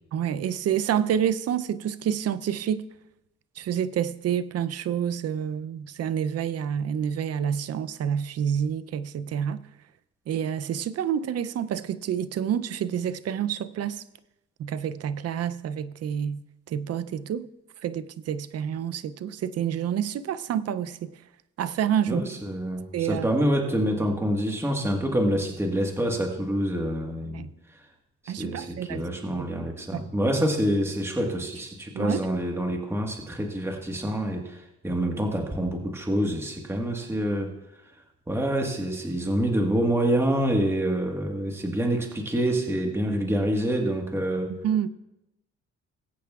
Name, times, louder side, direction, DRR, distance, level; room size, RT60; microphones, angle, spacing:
voice 1, 0.1-2.8 3.6-9.6 10.3-14.0 14.6-16.4 16.7-17.5 17.8-21.1 21.6-22.3 22.9-23.3 27.3-27.5 28.3-29.1 29.4-29.5 29.9-30.1 31.9-32.2 44.5-44.9, right 9 dB, 55° right, 0.5 m, -28 dB
voice 2, 22.1-27.5 28.2-37.5 38.3-44.6, right 1 dB, 10° right, 1.4 m, -26 dB
20.5 x 8.4 x 2.4 m
cardioid pair, 90°, 30 cm